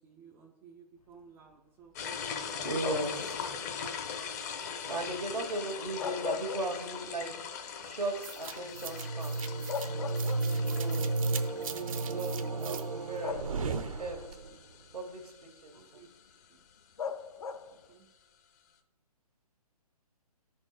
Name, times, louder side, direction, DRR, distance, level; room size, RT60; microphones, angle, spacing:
voice 1, 0.0-2.0 15.7-16.1 16.5-16.6 17.7-18.1, right 7 dB, 10° right, -3 dB, 0.4 m, -57 dB
sound 1, 2.0-16.3, left 6 dB, 25° left, 0.6 m, -41 dB
voice 2, 2.6-3.5 4.9-7.5 7.8-9.5 10.6-11.2 11.9-13.7 14.0-14.4 14.9-16.0, right 2 dB, 90° right, -2 dB, 1.6 m, -37 dB
sound 2, 2.8-3.3 5.8-7.2 7.6-7.7 9.2-9.3 9.7-10.8 11.8-12.0 13.2-13.9 17.0-17.9, left 6 dB, 60° left, 0.7 m, -38 dB
sound 3, 8.2-14.6, right 3 dB, 60° right, 0.7 m, -33 dB
11.0 x 4.4 x 4.7 m, 1.0 s
hypercardioid pair, 145°, 20 cm